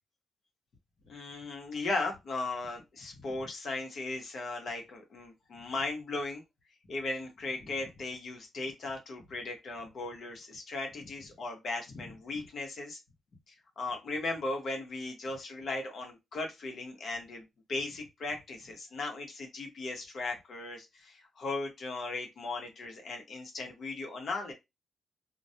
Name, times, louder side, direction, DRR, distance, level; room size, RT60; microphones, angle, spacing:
voice 1, 1.1-6.4 6.9-13.0 13.5-24.5, left 3 dB, 55° left, 2 dB, 0.9 m, -37 dB
2.2 x 2.1 x 2.7 m, 0.21 s
cardioid pair, 130°, 0 cm